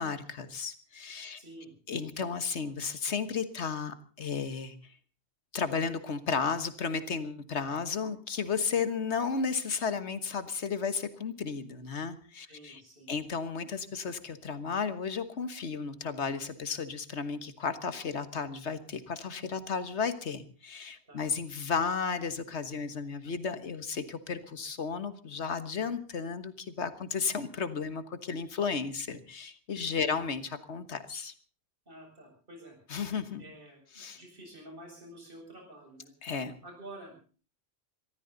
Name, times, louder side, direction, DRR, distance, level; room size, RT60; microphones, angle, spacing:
voice 1, 0.0-1.4 1.9-4.8 5.5-12.8 13.1-31.3 32.9-33.4 34.0-34.2 36.2-36.5, left 5 dB, 80° left, 11 dB, 1.7 m, -33 dB
voice 2, 1.3-1.7 12.5-13.1 21.1-21.3 29.8-30.3 31.9-32.8 33.4-36.1 36.6-37.1, right 1 dB, 50° right, 1 dB, 7.6 m, -49 dB
23.0 x 15.0 x 4.0 m, 0.38 s
omnidirectional pair, 1.1 m